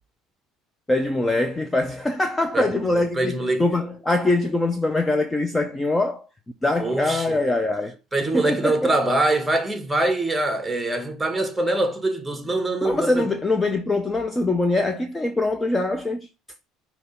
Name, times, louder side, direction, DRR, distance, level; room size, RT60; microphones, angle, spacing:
voice 1, 0.9-6.3 6.6-8.0 8.3-8.9 12.8-16.3, left 2 dB, 15° left, 0.5 m, -23 dB
voice 2, 2.9-3.7 6.8-7.4 8.1-13.3, right 2 dB, 5° right, 1.1 m, -24 dB
5.9 x 2.9 x 5.5 m
cardioid pair, 125°, 0 cm